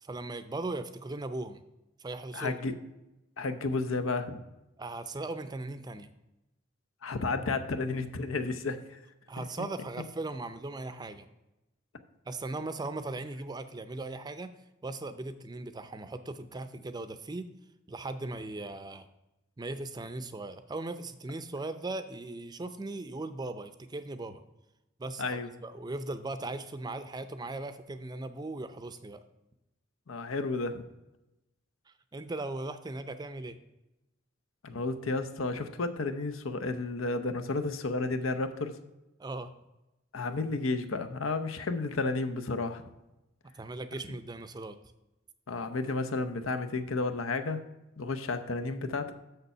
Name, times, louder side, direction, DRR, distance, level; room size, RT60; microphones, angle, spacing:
voice 1, 0.0-1.6 2.0-2.6 4.8-6.1 9.3-11.3 12.3-14.5 14.8-17.5 17.9-19.1 19.6-24.4 25.0-29.2 31.9-33.6 39.2-39.5 43.5-44.8, right 2 dB, 20° right, 11 dB, 0.5 m, -38 dB
voice 2, 2.3-2.7 3.4-4.4 7.0-9.0 9.4-9.5 25.2-25.5 30.1-30.8 34.6-38.8 40.1-42.9 45.5-47.6 48.0-49.1, left 3 dB, 85° left, 9 dB, 0.7 m, -32 dB
6.7 x 6.7 x 5.5 m, 0.96 s
head